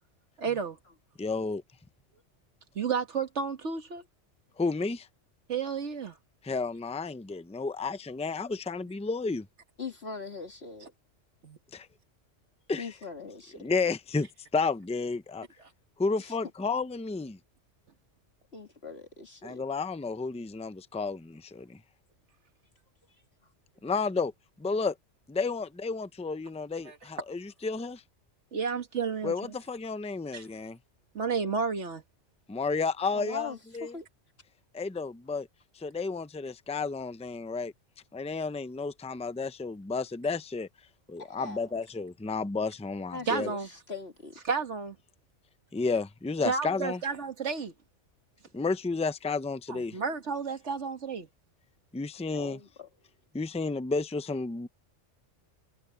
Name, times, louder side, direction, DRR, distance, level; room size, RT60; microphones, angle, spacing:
voice 1, 0.4-0.8 2.8-4.0 5.5-6.2 11.4-11.6 26.8-27.0 28.5-29.3 30.3-30.4 31.1-32.0 43.3-43.7 44.5-45.0 46.4-47.7 49.7-51.3, right 5 dB, 70° right, 1.9 m, -31 dB
voice 2, 1.2-1.6 4.6-5.1 6.4-9.5 11.7-11.9 12.7-12.9 13.6-15.5 16.0-17.4 19.4-21.8 23.8-24.3 24.6-24.9 25.3-28.0 29.2-30.8 32.5-33.9 34.7-35.5 35.7-37.7 38.1-40.7 41.1-43.5 45.7-47.0 48.5-50.0 51.9-52.6 53.3-54.7, left 4 dB, 10° left, 0.5 m, -32 dB
voice 3, 9.8-10.9 12.8-13.7 16.2-16.4 18.5-19.6 33.1-34.1 41.2-41.8 43.1-44.4 52.3-52.9, left 4 dB, 55° left, 2.3 m, -41 dB
omnidirectional pair, 1.3 m